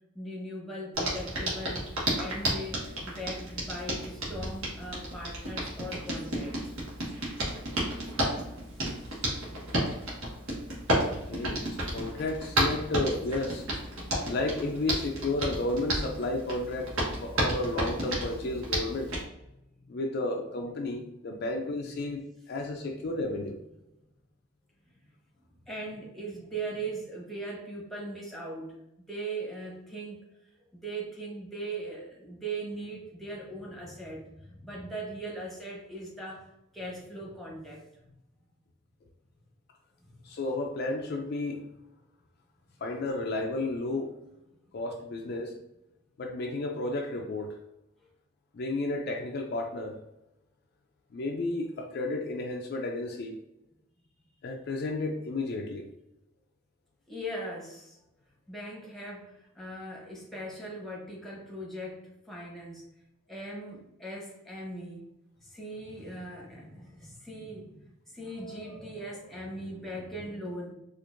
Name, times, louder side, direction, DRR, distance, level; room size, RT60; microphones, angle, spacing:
voice 1, 0.1-1.9 2.1-6.8 9.1-9.2 19.7-19.9 24.8-25.0 25.7-28.8 29.1-30.2 30.7-36.5 36.7-38.1 40.0-40.2 44.5-44.6 48.0-48.1 57.1-58.0 58.5-62.9 63.3-65.1 65.4-70.7, right 1 dB, ahead, -4 dB, 0.8 m, -40 dB
Hands, 0.9-19.2, right 1 dB, 85° right, 1.2 m, -32 dB
voice 2, 11.0-13.7 14.3-16.9 17.2-19.1 19.9-23.6 40.2-41.7 42.8-44.1 44.7-45.5 46.2-47.6 48.5-50.0 51.1-53.4 54.4-55.9, left 2 dB, 50° left, 2 dB, 0.4 m, -32 dB
4.4 x 2.5 x 2.5 m, 0.89 s
head